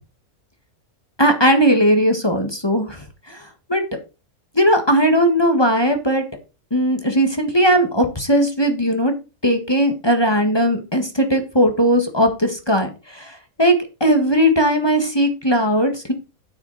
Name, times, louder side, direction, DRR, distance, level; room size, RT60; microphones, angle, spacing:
voice 1, 1.2-3.0 3.3-3.4 3.7-3.8 4.6-6.2 6.7-9.1 9.4-13.3 13.6-16.1, equal, 20° left, 5 dB, 1.6 m, -18 dB
9.3 x 8.4 x 4.1 m, 0.30 s
omnidirectional pair, 1.5 m